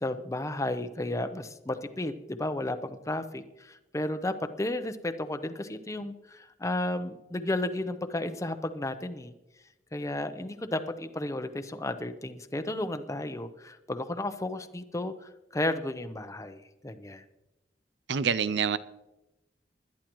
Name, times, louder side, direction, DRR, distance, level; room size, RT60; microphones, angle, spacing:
voice 1, 0.0-9.3 9.9-17.2, left 1 dB, 20° left, 10 dB, 0.7 m, -33 dB
voice 2, 18.1-18.8, right 6 dB, 75° right, 16 dB, 0.6 m, -26 dB
20.0 x 12.0 x 3.1 m, 0.98 s
head